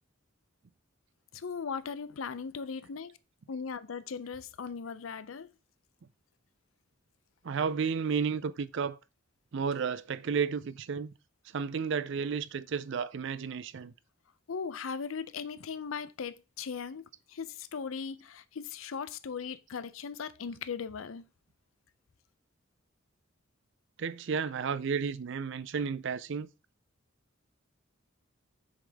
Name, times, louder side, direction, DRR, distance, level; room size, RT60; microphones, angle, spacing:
voice 1, 1.3-3.1 3.5-5.5 14.5-21.3, left 6 dB, 85° left, 0.6 m, -38 dB
voice 2, 7.4-9.0 9.5-11.1 11.5-13.9 24.0-26.5, right 6 dB, 65° right, 0.5 m, -32 dB
7.2 x 5.0 x 3.5 m
head